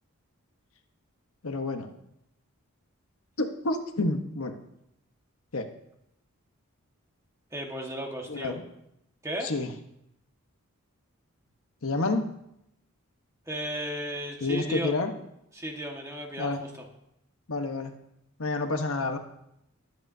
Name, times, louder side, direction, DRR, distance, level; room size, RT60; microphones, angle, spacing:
voice 1, 1.4-1.9 3.4-4.6 5.5-5.7 8.3-8.6 9.4-9.7 11.8-12.3 14.4-15.1 16.4-16.6 17.5-17.9 18.4-19.2, left 2 dB, 70° left, 5 dB, 1.1 m, -29 dB
voice 2, 7.5-8.6 9.2-9.5 13.5-14.9 15.5-16.7, equal, 15° right, 1 dB, 1.5 m, -34 dB
20.5 x 9.0 x 2.7 m, 0.80 s
head